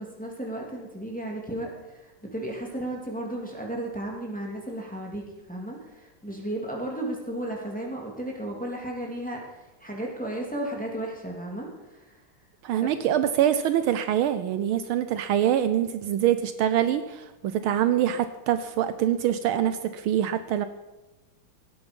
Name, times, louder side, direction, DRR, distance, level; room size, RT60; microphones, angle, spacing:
voice 1, 0.0-12.2 12.8-12.9, right 1 dB, 5° left, -2 dB, 2.6 m, -34 dB
voice 2, 12.6-20.7, right 10 dB, 75° right, 11 dB, 1.4 m, -24 dB
16.5 x 10.5 x 5.3 m, 1.1 s
omnidirectional pair, 2.4 m